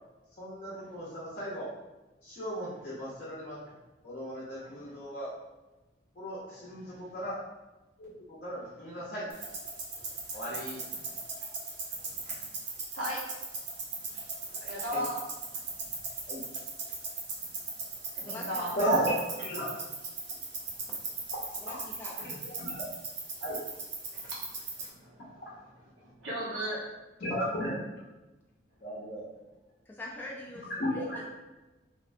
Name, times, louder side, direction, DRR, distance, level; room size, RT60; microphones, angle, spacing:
voice 1, 0.4-1.7 2.2-3.6 4.0-5.3 6.2-7.4 8.0-9.2 10.3-10.8 12.3-12.4 14.9-15.0 16.3-16.4 18.7-19.7 22.2-22.3 22.6-22.8 23.4-23.6 27.2-27.7 28.8-29.2 30.8-31.3, equal, 50° left, -8 dB, 0.6 m, -34 dB
voice 2, 4.6-4.9 6.5-7.1 11.1-11.2 12.4-12.6 12.9-13.2 14.1-14.2 14.6-15.2 18.1-18.7 24.8-25.5 26.0-26.8, equal, 85° right, -6 dB, 1.0 m, -37 dB
sound 1, 9.3-24.9, right 3 dB, 70° right, 0.6 m, -39 dB
voice 3, 18.2-18.7 21.6-22.1 29.9-31.2, left 2 dB, 10° left, -4 dB, 0.3 m, -44 dB
2.5 x 2.2 x 2.5 m, 1.1 s
head